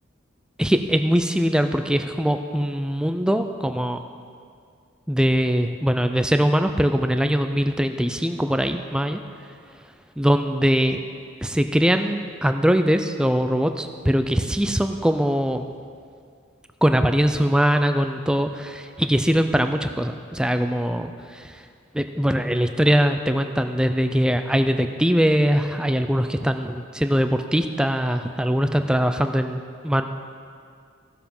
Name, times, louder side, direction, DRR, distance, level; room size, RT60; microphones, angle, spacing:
voice 1, 0.6-4.0 5.1-9.2 10.2-11.0 11.4-15.7 16.8-21.5 21.9-30.1, equal, 5° right, 7 dB, 0.4 m, -22 dB
15.0 x 6.9 x 5.4 m, 2.2 s
head